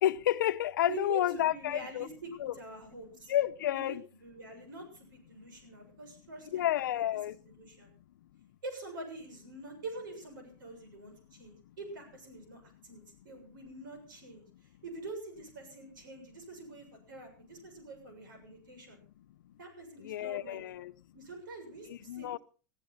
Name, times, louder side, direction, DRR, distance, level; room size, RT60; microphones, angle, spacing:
voice 1, 0.0-2.1 2.4-2.5 3.3-4.0 6.5-7.4 19.4-19.5 20.0-20.9 21.9-22.4, left 12 dB, 80° left, 0.8 m, -30 dB
voice 2, 0.9-3.3 3.7-7.9 8.6-19.0 19.6-20.6 21.1-22.4, right 2 dB, 90° right, 7.0 m, -46 dB
21.0 x 14.0 x 4.2 m
hypercardioid pair, 115°, 10 cm